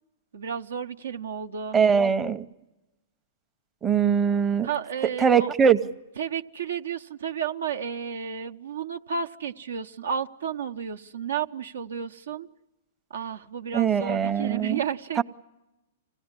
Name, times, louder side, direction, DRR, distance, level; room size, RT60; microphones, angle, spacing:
voice 1, 0.3-1.8 4.6-5.5 6.2-12.5 13.1-15.2, right 7 dB, 80° right, 6 dB, 0.8 m, -32 dB
voice 2, 1.7-2.4 3.8-4.7 5.2-5.8 13.7-14.8 15.2-15.3, right 7 dB, 20° right, 8 dB, 0.7 m, -21 dB
25.5 x 16.5 x 9.8 m, 1.0 s
hypercardioid pair, 130°, 0 cm